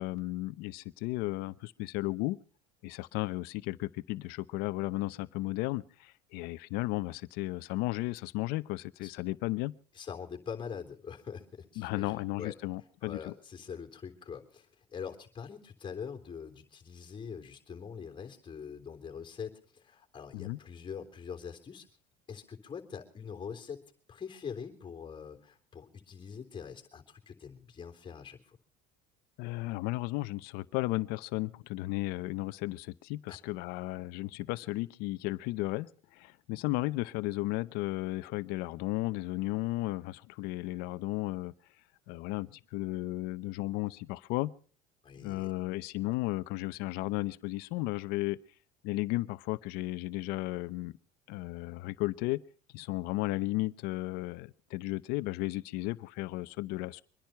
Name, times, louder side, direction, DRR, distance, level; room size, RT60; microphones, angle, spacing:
voice 1, 0.0-2.4 2.8-9.7 11.8-13.3 20.3-20.6 29.4-41.5 42.1-44.5 45.2-48.4 48.8-50.9 51.3-52.4 52.7-57.0, left 19 dB, 70° left, 0.8 m, -34 dB
voice 2, 9.9-12.5 13.0-21.9 22.3-23.8 24.1-28.6 33.3-33.4 45.0-45.5, left 7 dB, 30° left, 3.4 m, -43 dB
24.5 x 10.5 x 5.7 m
supercardioid pair, 100°, 16 cm